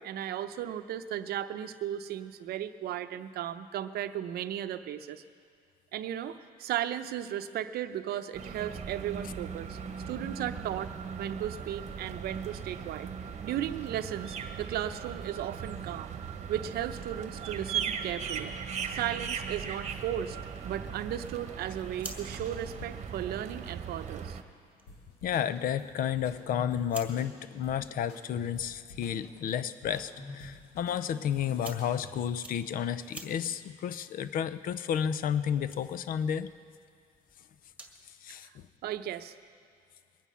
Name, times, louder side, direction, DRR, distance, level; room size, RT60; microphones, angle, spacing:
voice 1, 0.0-5.2 5.9-9.8 10.1-10.9 11.2-13.1 13.4-16.2 16.5-18.5 18.9-20.4 20.6-24.4 38.4-38.5 38.8-39.4, right 11 dB, 70° right, 10 dB, 0.7 m, -35 dB
sound 1, 8.3-24.4, right 7 dB, 40° right, 1.1 m, -38 dB
sound 2, 21.7-38.1, right 2 dB, 10° right, 1.8 m, -53 dB
sound 3, 24.9-32.5, left 2 dB, 80° left, 2.2 m, -49 dB
voice 2, 25.2-36.5 38.2-38.7, left 9 dB, 60° left, 14 dB, 0.6 m, -32 dB
21.5 x 9.3 x 5.6 m, 2.1 s
cardioid pair, 110°, 17 cm